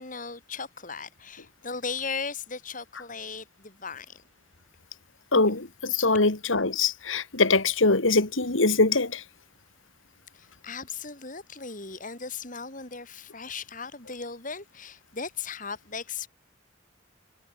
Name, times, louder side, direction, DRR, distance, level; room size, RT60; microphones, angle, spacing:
voice 1, 0.0-4.2 10.3-16.3, left 5 dB, 40° left, 3.7 m, -37 dB
voice 2, 5.3-9.2, left 3 dB, 85° left, 2.4 m, -23 dB
head